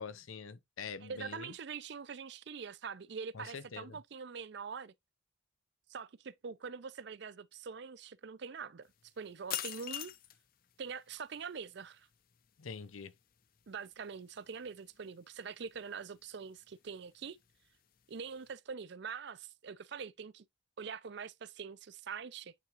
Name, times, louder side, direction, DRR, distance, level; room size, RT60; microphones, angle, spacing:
voice 1, 0.0-1.5 3.3-4.0 12.6-13.1, left 5 dB, 80° left, 0.7 m, -45 dB
voice 2, 1.0-4.9 5.9-10.1 10.8-12.1 13.7-17.4 18.1-20.5 20.8-22.5, right 6 dB, 55° right, 0.5 m, -44 dB
sound 1, 8.9-18.5, left 11 dB, 45° left, 0.5 m, -48 dB
9.1 x 3.6 x 3.0 m
head